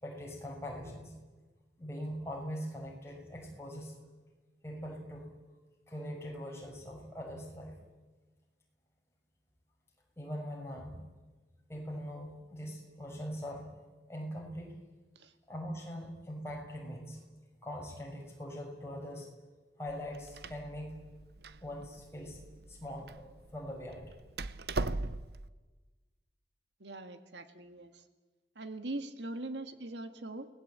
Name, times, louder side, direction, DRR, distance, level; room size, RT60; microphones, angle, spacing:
voice 1, 0.0-1.1 1.8-3.9 4.6-5.3 5.9-7.8 10.2-11.0 11.7-13.7 14.1-14.7 15.5-17.2 17.6-19.3 19.8-21.0 21.6-22.4 22.7-24.1, equal, 15° left, 0 dB, 6.2 m, -42 dB
Door, 19.9-25.5, right 2 dB, 55° right, 0.9 m, -40 dB
voice 2, 26.8-28.0 28.6-30.5, right 2 dB, 75° right, 8 dB, 1.9 m, -41 dB
29.5 x 20.0 x 8.7 m, 1.3 s
head